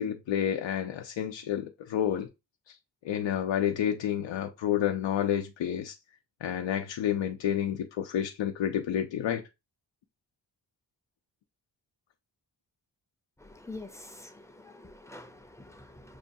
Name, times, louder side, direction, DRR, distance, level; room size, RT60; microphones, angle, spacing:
voice 1, 0.0-2.3 2.7-2.8 3.0-5.9 6.4-9.4, left 10 dB, 90° left, 0.5 m, -29 dB
voice 2, 13.4-16.2, left 2 dB, 5° left, 0.4 m, -46 dB
6.2 x 2.3 x 2.5 m
wide cardioid pair, 140°, 43 cm